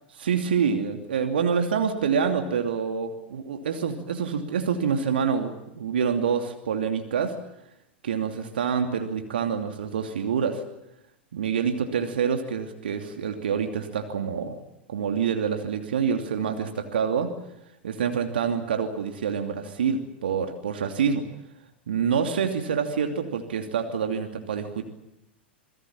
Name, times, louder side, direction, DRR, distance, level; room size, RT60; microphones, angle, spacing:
voice 1, 0.2-7.4 8.0-10.6 11.3-14.6 14.9-17.3 17.8-21.3 21.9-24.8, right 6 dB, 65° right, 5 dB, 2.8 m, -26 dB
27.5 x 22.0 x 7.3 m, 0.85 s
figure-of-eight pair, 95°, 6 cm